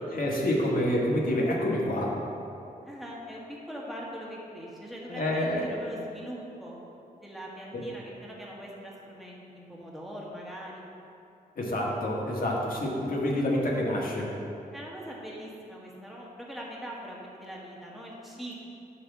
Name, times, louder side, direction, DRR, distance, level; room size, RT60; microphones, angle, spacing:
voice 1, 0.1-2.2 5.1-5.7 7.7-7.8 11.6-14.3, left 1 dB, 65° left, -3 dB, 1.5 m, -27 dB
voice 2, 2.8-6.8 7.2-10.8 14.7-18.6, equal, ahead, -4 dB, 1.6 m, -42 dB
9.9 x 3.4 x 6.7 m, 2.8 s
wide cardioid pair, 95°, 16 cm